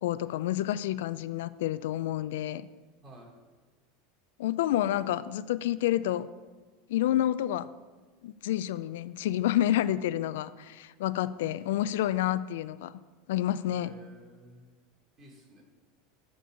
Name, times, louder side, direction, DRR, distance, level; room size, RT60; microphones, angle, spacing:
voice 1, 0.0-2.7 4.4-6.3 6.9-7.7 8.2-12.9 13.3-14.0, left 12 dB, 85° left, 15 dB, 0.3 m, -29 dB
voice 2, 13.7-14.7 15.2-15.6, right 1 dB, 35° right, -3 dB, 2.6 m, -52 dB
6.0 x 5.3 x 6.4 m, 1.4 s
supercardioid pair, 140°, 0 cm